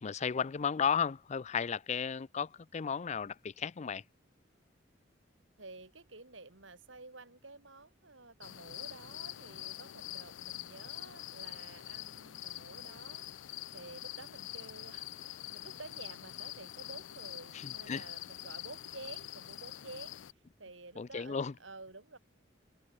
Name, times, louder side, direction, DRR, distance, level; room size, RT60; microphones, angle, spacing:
voice 1, 0.0-4.0 17.5-18.0 21.0-21.5, left 6 dB, 40° left, 0.4 m, -34 dB
voice 2, 5.6-13.3 13.7-20.2 20.6-22.2, right 3 dB, 85° right, 6.0 m, -51 dB
sound 1, 8.4-20.3, left 14 dB, 85° left, 0.5 m, -45 dB
head